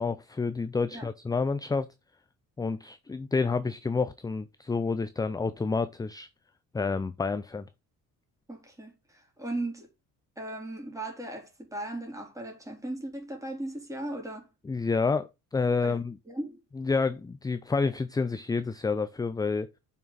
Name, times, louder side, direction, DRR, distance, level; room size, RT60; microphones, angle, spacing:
voice 1, 0.0-1.9 2.6-6.3 6.7-7.6 14.7-16.2 16.8-19.7, left 4 dB, 10° left, 0.4 m, -29 dB
voice 2, 8.5-9.9 10.4-14.5 15.8-16.0 16.3-16.6, right 1 dB, 10° right, 3.4 m, -37 dB
7.1 x 5.9 x 4.0 m
cardioid pair, 110°, 36 cm